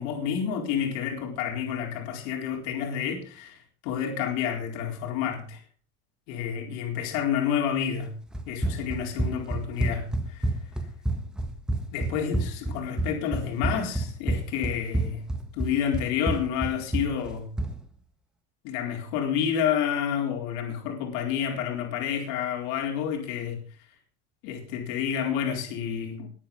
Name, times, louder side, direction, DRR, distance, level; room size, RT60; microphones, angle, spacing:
voice 1, 0.0-3.6 3.8-5.6 6.3-8.2 8.5-10.5 11.9-15.2 15.6-17.5 18.6-23.6 24.4-26.3, left 8 dB, 60° left, 3 dB, 4.2 m, -29 dB
Run, 8.3-17.8, right 1 dB, ahead, 1.6 m, -29 dB
21.0 x 8.8 x 5.5 m, 0.40 s
cardioid pair, 180°, 34 cm